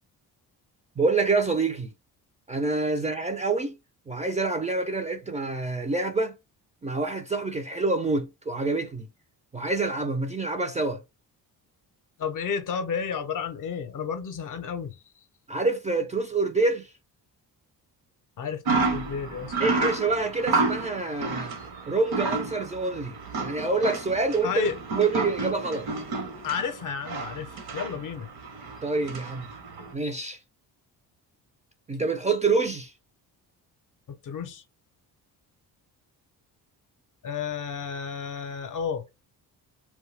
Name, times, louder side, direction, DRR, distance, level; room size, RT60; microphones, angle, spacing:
voice 1, 1.0-1.9 2.5-3.8 4.1-6.3 6.8-9.1 9.5-11.0 15.5-16.9 19.6-21.5 21.9-23.1 23.4-24.7 25.0-25.9 28.8-29.5 29.9-30.4 31.9-32.9, right 3 dB, 20° right, 0.4 m, -26 dB
voice 2, 12.2-15.0 18.4-19.7 24.4-24.8 26.4-28.3 34.2-34.6 37.2-39.1, left 6 dB, 50° left, 0.6 m, -32 dB
sound 1, 18.7-29.9, right 3 dB, 70° right, 1.0 m, -31 dB
2.2 x 2.2 x 3.2 m
cardioid pair, 85°, 39 cm